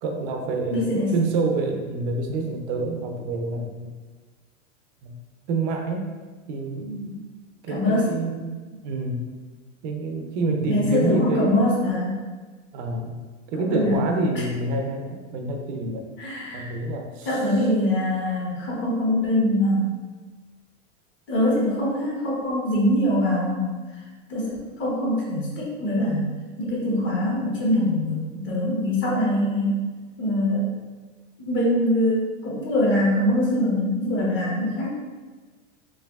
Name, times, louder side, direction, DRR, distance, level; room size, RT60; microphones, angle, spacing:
voice 1, 0.0-3.9 5.0-5.1 5.5-6.1 6.5-7.2 7.6-9.3 9.8-11.6 12.7-13.2 13.5-16.1 16.5-17.4, right 3 dB, 45° right, 3 dB, 0.6 m, -27 dB
voice 2, 0.7-1.1 7.7-8.1 10.7-12.2 13.5-14.0 16.2-16.7 17.2-20.0 21.3-23.7 24.3-26.3 26.6-29.8 30.2-30.7 31.4-34.9, left 1 dB, 30° left, -5 dB, 1.2 m, -23 dB
4.6 x 3.0 x 2.3 m, 1.4 s
supercardioid pair, 150°, 37 cm